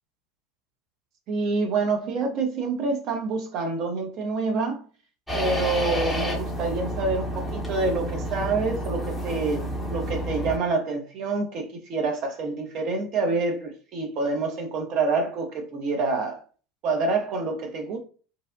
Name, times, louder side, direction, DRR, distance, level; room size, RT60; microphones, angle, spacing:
voice 1, 1.3-4.8 5.3-16.4 16.8-18.0, right 3 dB, 50° right, 0.7 m, -27 dB
sound 1, 5.3-10.6, equal, 5° right, 0.8 m, -29 dB
2.6 x 2.0 x 2.6 m
figure-of-eight pair, 75°, 0 cm